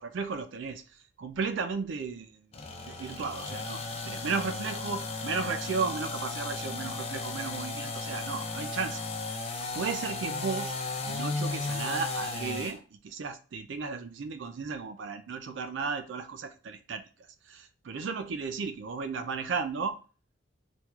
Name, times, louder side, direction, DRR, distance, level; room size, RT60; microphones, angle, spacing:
voice 1, 0.0-9.4 9.7-10.8 11.1-17.0 17.5-20.0, right 5 dB, 75° right, 0.4 m, -35 dB
sound 1, 2.5-12.8, left 3 dB, 35° left, 0.4 m, -35 dB
4.4 x 2.3 x 2.3 m
head